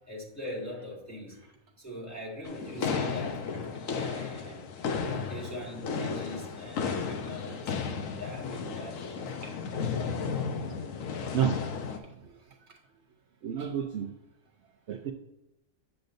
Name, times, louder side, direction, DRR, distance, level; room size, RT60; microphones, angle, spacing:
voice 1, 0.1-3.4 3.9-4.6 5.0-7.9 8.1-9.2, left 1 dB, 10° left, -4 dB, 1.6 m, -42 dB
sound 1, 2.4-12.0, left 5 dB, 80° left, 1.1 m, -34 dB
voice 2, 11.3-12.3 13.4-14.1 14.9-15.1, right 9 dB, 65° right, 2 dB, 0.9 m, -31 dB
7.9 x 6.9 x 2.6 m, 0.92 s
omnidirectional pair, 1.4 m